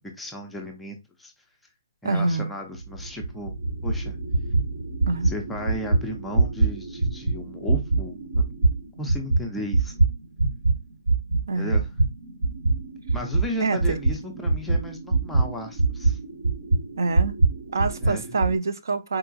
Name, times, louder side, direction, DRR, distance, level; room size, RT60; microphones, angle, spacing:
voice 1, 0.1-1.3 2.0-3.6 3.8-4.2 5.2-8.6 9.0-9.9 11.5-11.9 13.1-16.2 18.0-18.2, left 1 dB, 5° left, 0.3 m, -34 dB
voice 2, 2.0-2.5 5.1-5.3 11.5-11.7 13.6-14.0 17.0-17.4 17.7-19.2, right 3 dB, 65° right, 0.4 m, -26 dB
sound 1, 2.7-10.8 11.1-18.5, right 3 dB, 80° right, 1.2 m, -24 dB
3.8 x 2.3 x 2.5 m
hypercardioid pair, 175°, 2 cm